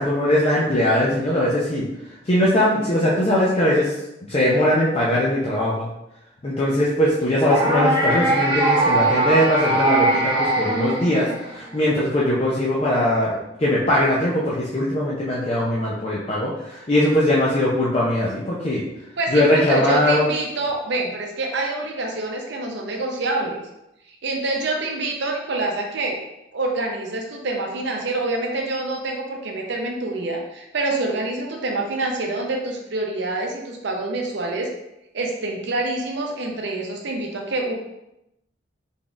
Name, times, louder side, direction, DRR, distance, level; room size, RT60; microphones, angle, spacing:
voice 1, 0.0-1.9 2.3-3.9 4.2-5.9 6.4-18.8 19.3-20.3, left 1 dB, 30° left, -6 dB, 0.5 m, -20 dB
sound 1, 7.5-11.7, right 2 dB, 25° right, 1.0 m, -20 dB
voice 2, 19.2-23.6 24.2-26.2 26.5-34.7 35.1-37.7, right 2 dB, 65° right, 1 dB, 0.6 m, -26 dB
4.0 x 3.5 x 2.4 m, 0.88 s
head